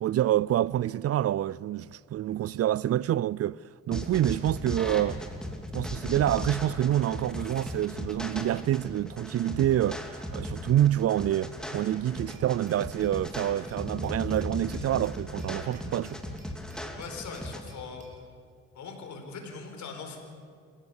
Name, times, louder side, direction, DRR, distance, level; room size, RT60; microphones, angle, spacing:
voice 1, 0.0-3.6 3.9-5.2 5.7-10.0 10.3-16.2, right 12 dB, 55° right, 0.4 m, -27 dB
sound 1, 3.9-17.6, left 1 dB, ahead, 2.8 m, -37 dB
Glass, 12.3-18.2, right 3 dB, 25° right, 6.3 m, -60 dB
voice 2, 16.9-18.1 18.7-20.2, left 5 dB, 70° left, 4.6 m, -41 dB
27.5 x 16.0 x 7.2 m
cardioid pair, 90°, 30 cm